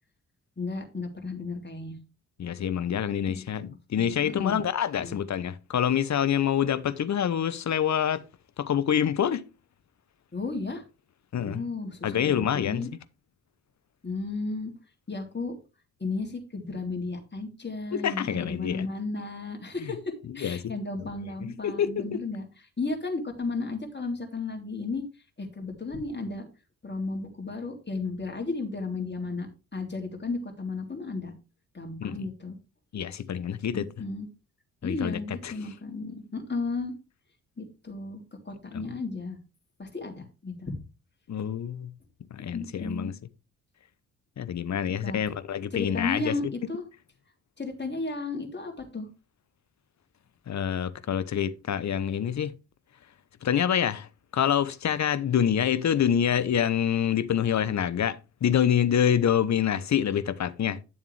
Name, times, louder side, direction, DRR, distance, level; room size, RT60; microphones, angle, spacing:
voice 1, 0.6-1.9 3.3-3.4 3.9-4.6 5.0-5.2 10.3-10.8 11.4-12.9 14.0-14.7 15.1-15.5 16.0-20.0 20.3-22.5 22.8-25.0 25.4-26.5 26.8-31.3 31.7-32.5 33.7-34.3 34.8-36.9 37.6-39.4 39.8-40.7 42.5-43.1 45.0-45.2 45.7-46.8 47.6-49.1, left 3 dB, 25° left, 3.3 m, -34 dB
voice 2, 2.4-8.2 8.6-9.4 11.3-11.6 12.0-12.9 17.9-18.9 19.8-19.9 20.4-20.7 21.4-22.2 32.0-32.3 32.9-33.9 34.8-35.5 38.7-38.8 41.3-41.9 42.3-43.1 44.4-46.3 50.5-52.5 53.4-54.1 54.3-60.8, left 9 dB, 40° left, 0.9 m, -26 dB
10.5 x 7.1 x 3.3 m
hypercardioid pair, 40°, 43 cm